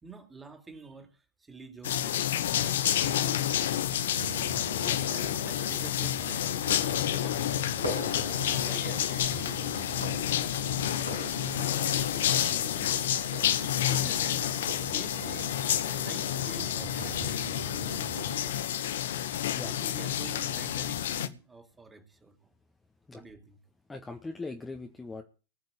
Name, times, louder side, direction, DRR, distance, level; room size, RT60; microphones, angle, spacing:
voice 1, 0.0-3.7 4.7-6.6 7.1-7.4 8.2-12.9 13.3-13.6 13.9-15.5 15.9-17.6 18.4-18.6 19.6-22.5 23.1-23.6, right 4 dB, 10° right, 6 dB, 3.1 m, -48 dB
sound 1, 1.8-21.3, left 11 dB, 60° left, 1.1 m, -29 dB
sound 2, 4.1-18.3, left 1 dB, 85° left, 6.5 m, -40 dB
voice 2, 23.9-25.2, left 3 dB, 10° left, 3 dB, 1.7 m, -40 dB
19.0 x 6.6 x 8.1 m, 0.35 s
figure-of-eight pair, 90°, 0 cm